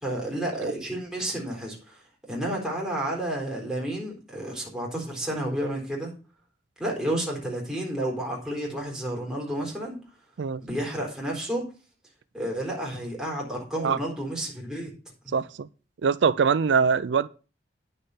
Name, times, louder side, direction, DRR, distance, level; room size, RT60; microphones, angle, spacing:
voice 1, 0.0-2.0 2.3-6.1 6.8-10.0 10.6-11.6 12.3-14.9 15.2-15.4, right 1 dB, 5° right, 4.0 m, -31 dB
voice 2, 15.3-15.7 16.0-17.3, right 6 dB, 90° right, 0.4 m, -23 dB
9.9 x 6.6 x 5.6 m
head